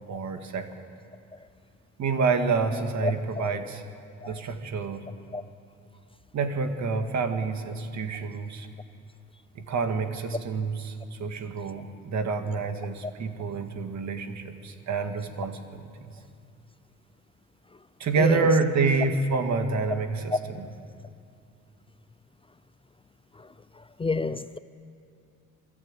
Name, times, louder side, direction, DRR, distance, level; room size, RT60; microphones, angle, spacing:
voice 1, 0.1-0.7 2.0-3.8 4.3-5.1 6.3-8.7 9.6-15.8 18.0-20.7, right 4 dB, 65° right, 1.9 m, -28 dB
voice 2, 3.0-3.5 4.2-4.4 5.3-5.4 18.2-18.5 24.0-24.6, left 3 dB, 20° left, 0.5 m, -29 dB
23.0 x 14.0 x 9.0 m
cardioid pair, 90°, 30 cm